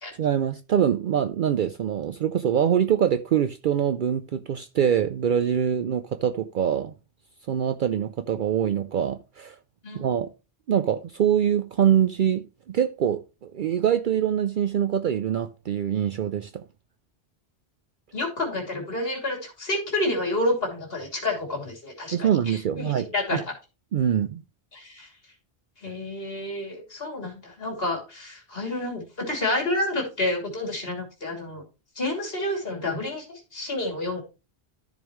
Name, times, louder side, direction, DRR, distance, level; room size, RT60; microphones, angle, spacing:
voice 1, 0.2-6.9 7.5-9.6 9.9-10.3 10.7-16.6 22.1-23.4 23.9-24.4, right 9 dB, 60° right, 0.6 m, -24 dB
voice 2, 18.1-23.4 24.7-25.1 25.8-31.6 32.0-34.2, left 1 dB, 65° left, 3.0 m, -29 dB
13.0 x 5.2 x 3.0 m
omnidirectional pair, 1.1 m